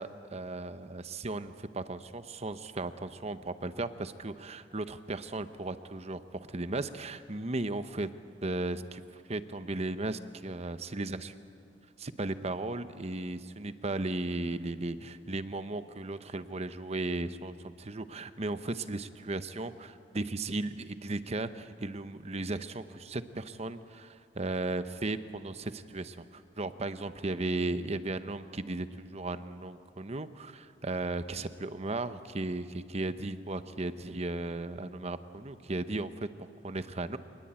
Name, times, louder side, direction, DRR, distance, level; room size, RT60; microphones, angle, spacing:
voice 1, 0.0-8.1 8.4-11.3 12.0-37.2, right 2 dB, 35° right, 12 dB, 0.9 m, -36 dB
26.0 x 20.0 x 8.9 m, 2.3 s
head